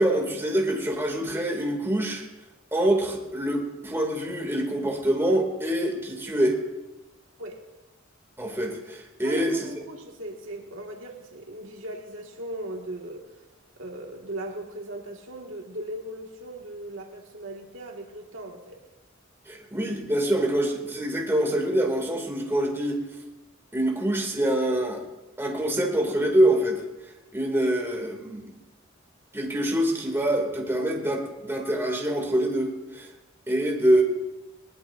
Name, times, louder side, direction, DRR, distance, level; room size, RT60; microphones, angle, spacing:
voice 1, 0.0-2.3 2.7-6.6 8.4-9.6 19.5-23.0 23.7-25.0 25.4-26.8 27.3-28.5 29.3-33.1 33.5-34.0, right 1 dB, 10° right, 0 dB, 2.6 m, -25 dB
voice 2, 9.2-13.4 13.8-18.8, right 1 dB, 70° right, 1 dB, 2.0 m, -38 dB
21.0 x 19.5 x 2.7 m, 1.0 s
head